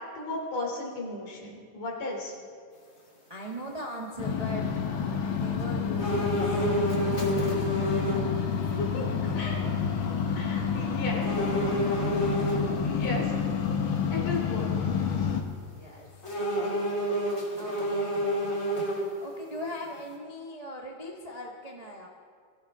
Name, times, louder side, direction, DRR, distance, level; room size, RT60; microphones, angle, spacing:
voice 1, 0.1-2.3 8.8-9.0 9.4-9.6 10.3-11.3 12.6-13.3 13.7-13.8 14.1-14.7 15.2-15.3, left 2 dB, 75° left, -2 dB, 4.8 m, -35 dB
voice 2, 3.3-4.8 5.2-6.6 8.8-9.4 10.6-11.9 15.6-16.5 17.2-18.4 19.2-22.1, equal, 80° right, -2 dB, 0.3 m, -41 dB
sound 1, 4.2-15.4, left 6 dB, 60° left, 1.4 m, -29 dB
sound 2, 6.0-8.3 8.7-8.8 11.2-12.6 16.2-19.3 19.7-19.8, equal, 25° left, 2.9 m, -29 dB
22.5 x 15.0 x 3.7 m, 2.1 s
omnidirectional pair, 3.7 m